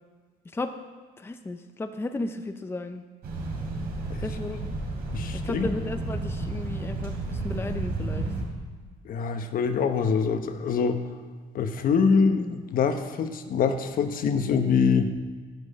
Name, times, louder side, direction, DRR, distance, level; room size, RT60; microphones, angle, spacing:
voice 1, 1.2-3.0 4.2-4.7 5.3-8.3, left 2 dB, 15° left, 8 dB, 0.6 m, -34 dB
sound 1, 3.2-8.4, right 2 dB, 70° right, 3.3 m, -32 dB
voice 2, 5.1-5.7 9.0-11.0 11.5-15.1, left 5 dB, 55° left, 8 dB, 1.0 m, -24 dB
10.5 x 6.2 x 8.6 m, 1.5 s
cardioid pair, 110°, 17 cm